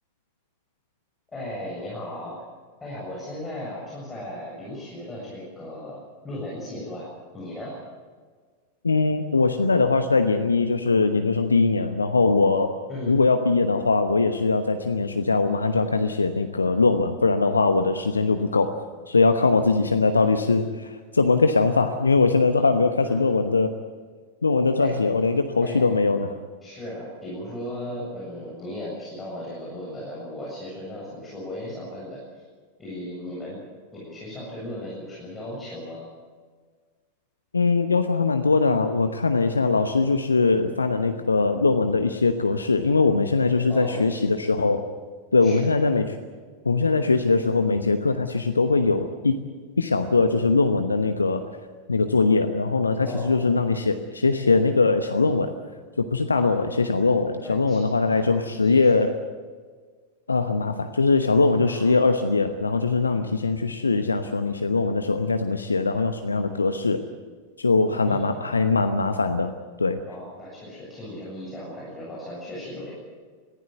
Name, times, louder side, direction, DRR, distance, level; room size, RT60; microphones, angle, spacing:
voice 1, 1.3-2.4 2.8-7.1 7.3-7.7 12.9-13.2 23.0-23.3 24.8-25.0 25.6-25.9 26.6-32.4 32.8-33.6 33.9-36.1 43.7-44.1 45.4-45.8 53.0-53.4 56.3-56.7 57.4-58.9 61.6-61.8 68.0-68.5 70.1-72.9, left 1 dB, 15° left, -6 dB, 7.4 m, -36 dB
voice 2, 8.8-12.8 13.1-18.7 19.1-23.7 24.4-26.3 37.5-44.8 45.3-46.1 46.6-49.3 49.8-51.4 51.9-55.5 56.0-59.2 60.3-67.0 67.6-70.0, left 3 dB, 75° left, 8 dB, 1.0 m, -21 dB
22.0 x 15.5 x 9.3 m, 1.5 s
figure-of-eight pair, 90°, 0 cm